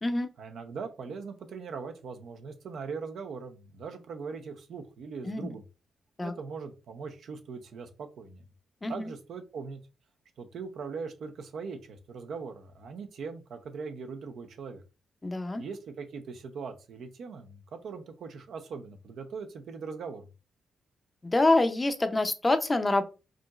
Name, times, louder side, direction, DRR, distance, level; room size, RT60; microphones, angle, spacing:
voice 1, 0.4-5.6 6.2-8.4 8.9-9.8 10.4-14.8 15.6-20.3, right 5 dB, 70° right, 5 dB, 0.7 m, -40 dB
voice 2, 15.2-15.6 21.2-23.0, left 2 dB, 20° left, 9 dB, 0.6 m, -26 dB
4.9 x 2.9 x 2.4 m, 0.31 s
cardioid pair, 95°, 0 cm